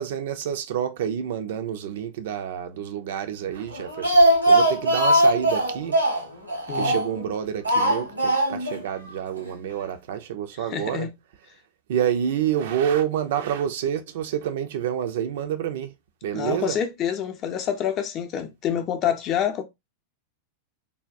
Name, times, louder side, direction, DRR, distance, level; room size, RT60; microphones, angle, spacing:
voice 1, 0.0-6.0 6.7-11.1 11.9-15.9 16.2-16.8, right 9 dB, 55° right, 0.4 m, -28 dB
Speech, 3.7-7.2 7.7-8.8 9.1-9.2 9.5-9.6, right 1 dB, 80° right, 1.0 m, -20 dB
voice 2, 10.7-11.1 16.3-19.6, left 9 dB, 35° left, 0.5 m, -27 dB
3.3 x 2.2 x 2.5 m
figure-of-eight pair, 90°, 0 cm